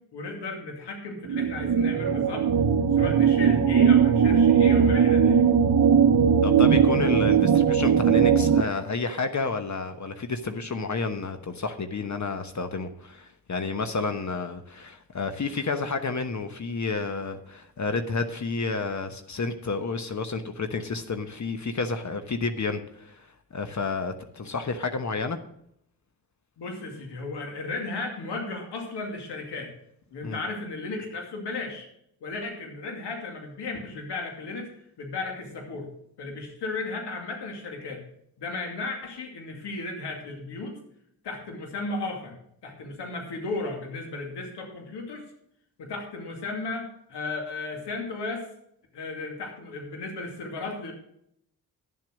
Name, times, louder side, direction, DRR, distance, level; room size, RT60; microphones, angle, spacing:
voice 1, 0.1-2.5 2.9-5.4 26.6-29.7 30.1-31.9 32.2-34.7 35.0-35.9 36.2-38.0 38.4-40.7 41.2-42.3 42.6-45.2 45.8-48.5 48.9-50.9, left 3 dB, 80° left, 2 dB, 2.5 m, -35 dB
sound 1, 1.3-8.6, right 7 dB, 50° right, 0.9 m, -19 dB
voice 2, 6.4-25.4 30.2-30.4, left 4 dB, 45° left, 8 dB, 1.2 m, -30 dB
11.0 x 7.5 x 6.4 m, 0.72 s
supercardioid pair, 50°, 41 cm